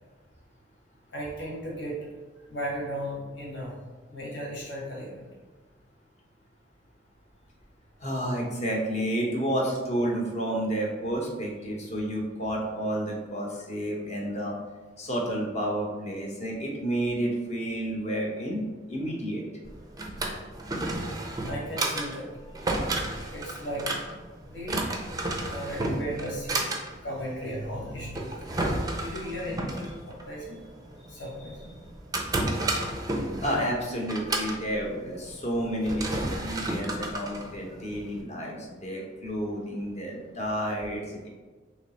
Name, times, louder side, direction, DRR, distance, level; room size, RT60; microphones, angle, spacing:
voice 1, 1.1-2.0 2.5-3.8 4.1-5.2 21.4-22.6 23.3-23.9 24.4-24.9 25.5-26.7 27.0-28.7 28.9-30.6 31.0-31.7, equal, 70° left, -5 dB, 1.3 m, -36 dB
voice 2, 8.0-14.6 15.0-18.6 18.9-19.4 33.4-41.3, right 1 dB, 35° left, -1 dB, 0.8 m, -30 dB
Drawer open or close, 19.6-38.2, right 2 dB, 20° right, 0.4 m, -32 dB
3.2 x 3.1 x 4.0 m, 1.3 s
head